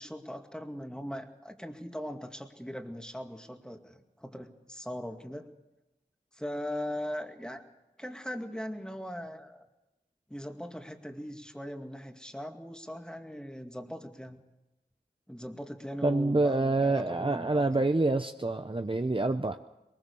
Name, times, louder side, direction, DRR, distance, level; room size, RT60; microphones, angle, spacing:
voice 1, 0.0-5.5 6.3-7.6 8.0-9.7 10.3-14.4 15.3-17.7, equal, 5° left, 5 dB, 2.2 m, -40 dB
voice 2, 16.0-19.6, right 2 dB, 30° right, 7 dB, 0.8 m, -27 dB
22.5 x 20.5 x 7.0 m, 1.0 s
wide cardioid pair, 45°, 17 cm